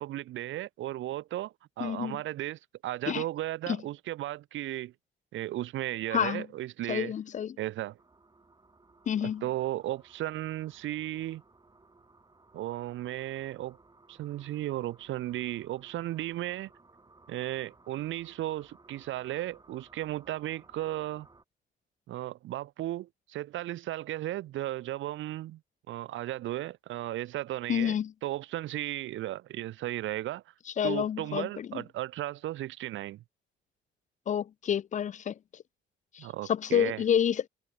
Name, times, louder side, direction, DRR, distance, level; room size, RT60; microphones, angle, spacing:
voice 1, 0.0-4.9 5.3-7.1 7.6-8.0 9.2-11.4 12.5-13.8 14.1-16.7 17.3-21.3 22.1-25.6 25.9-30.5 30.8-33.2 36.2-37.0, right 14 dB, 75° right, 0.8 m, -35 dB
voice 2, 1.8-2.2 3.1-3.2 3.7-3.8 6.1-6.4 6.9-7.6 9.1-9.4 27.7-28.1 30.8-31.8 34.3-35.6 36.1-37.5, left 9 dB, 40° left, 0.4 m, -29 dB
sound 1, 8.0-21.4, right 3 dB, 20° right, 4.5 m, -60 dB
cardioid pair, 90°, 20 cm